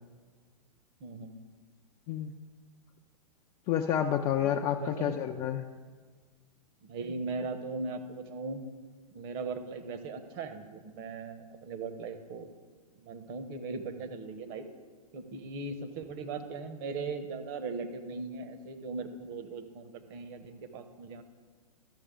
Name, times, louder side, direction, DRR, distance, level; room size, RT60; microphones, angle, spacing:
voice 1, 1.0-1.4 4.4-5.2 6.8-8.6 9.1-12.5 13.0-14.6 15.1-21.2, right 4 dB, 40° right, 8 dB, 0.9 m, -39 dB
voice 2, 3.7-5.7, left 10 dB, 20° left, 3 dB, 0.3 m, -29 dB
13.5 x 6.5 x 3.8 m, 1.5 s
figure-of-eight pair, 110°, 20 cm